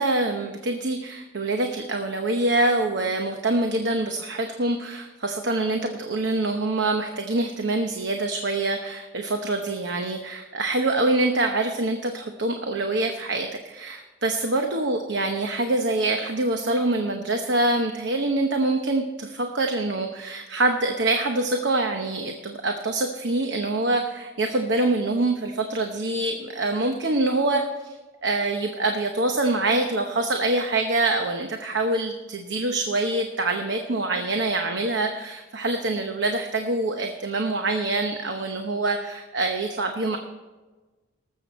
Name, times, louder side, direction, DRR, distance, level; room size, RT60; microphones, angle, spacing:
voice 1, 0.0-27.9 28.2-40.2, right 2 dB, 60° right, 4 dB, 0.9 m, -25 dB
19.0 x 7.7 x 4.3 m, 1.2 s
head